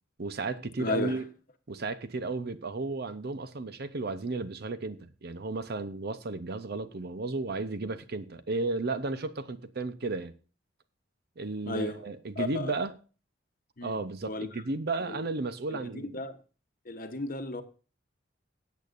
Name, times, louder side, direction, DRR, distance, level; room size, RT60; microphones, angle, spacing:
voice 1, 0.2-1.2 1.7-10.3 11.4-12.9 13.8-16.2, right 3 dB, 55° right, 0.8 m, -34 dB
voice 2, 0.8-1.2 11.7-12.0 12.4-12.7 13.8-14.6 15.0-15.3 15.7-16.3 16.8-17.6, left 3 dB, 45° left, 1.0 m, -35 dB
17.0 x 8.4 x 2.6 m
head